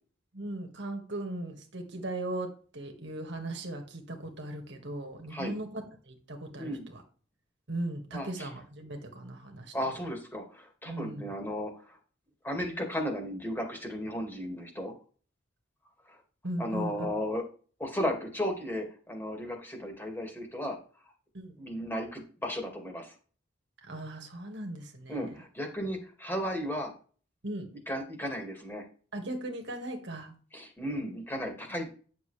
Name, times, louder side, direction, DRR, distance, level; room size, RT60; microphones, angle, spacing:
voice 1, 0.3-7.0 7.7-9.7 10.9-11.3 16.4-17.2 21.3-21.6 23.8-25.4 27.4-27.7 29.1-30.3, right 1 dB, 65° right, 4 dB, 1.8 m, -38 dB
voice 2, 8.1-8.5 9.7-12.0 12.4-14.9 16.1-16.2 16.6-17.4 17.8-20.8 21.6-23.1 25.1-26.9 27.9-28.8 30.5-31.9, equal, 10° left, 2 dB, 2.1 m, -35 dB
9.9 x 6.8 x 3.3 m, 0.40 s
head